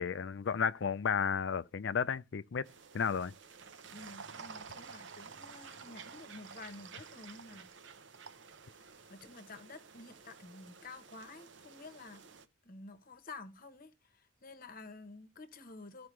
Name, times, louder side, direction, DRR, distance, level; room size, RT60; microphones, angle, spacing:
voice 1, 0.0-2.7 2.9-3.3, left 6 dB, 55° left, 0.4 m, -33 dB
sound 1, 2.6-12.5, right 5 dB, 60° right, 0.7 m, -52 dB
voice 2, 3.9-7.7 8.7-12.2 12.6-16.1, left 3 dB, 40° left, 1.0 m, -51 dB
14.5 x 4.8 x 3.1 m
head